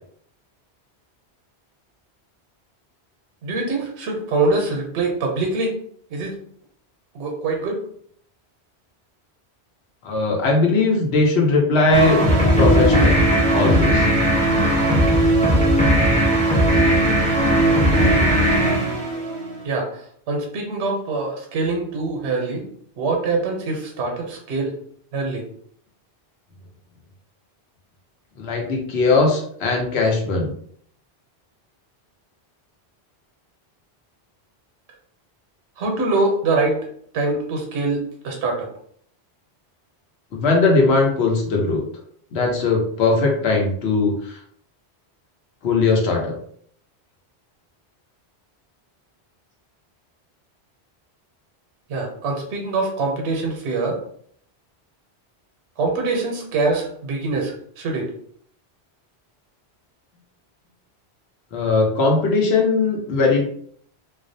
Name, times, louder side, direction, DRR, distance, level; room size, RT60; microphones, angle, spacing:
voice 1, 3.4-5.7 6.1-6.3 7.1-7.8 19.6-22.6 23.0-24.7 25.1-25.4 35.8-36.8 37.1-38.7 51.9-54.0 55.8-58.1, right 3 dB, 80° right, 1 dB, 0.9 m, -24 dB
voice 2, 10.0-12.2 12.6-13.3 13.5-14.1 28.4-30.5 40.3-41.8 42.3-44.4 45.6-46.3 61.5-63.4, left 3 dB, 75° left, 0 dB, 0.9 m, -19 dB
sound 1, 11.9-19.6, right 1 dB, 10° left, 0.4 m, -17 dB
2.4 x 2.0 x 2.6 m, 0.63 s
omnidirectional pair, 1.1 m